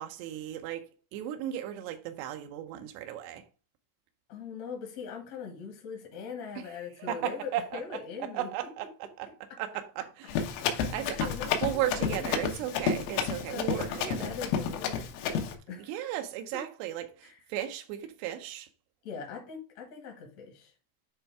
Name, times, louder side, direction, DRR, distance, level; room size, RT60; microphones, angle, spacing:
voice 1, 0.0-3.5 6.6-6.7 7.0-9.3 9.6-10.6 10.9-14.3 15.8-18.7, right 12 dB, 85° right, 2.4 m, -36 dB
voice 2, 4.3-8.5 11.1-12.5 13.5-15.9 16.5-16.6 17.2-17.4 19.0-20.7, left 6 dB, 65° left, 1.7 m, -41 dB
Run, 10.3-15.5, left 7 dB, 85° left, 3.6 m, -31 dB
9.7 x 3.3 x 4.6 m
omnidirectional pair, 5.6 m